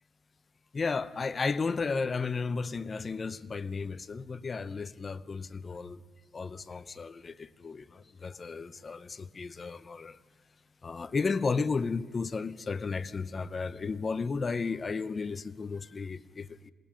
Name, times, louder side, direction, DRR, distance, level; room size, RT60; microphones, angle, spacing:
voice 1, 0.7-6.0 6.3-10.2 10.8-16.7, left 4 dB, 35° left, 0.8 m, -33 dB
27.0 x 20.5 x 5.2 m
cardioid pair, 90°, 0 cm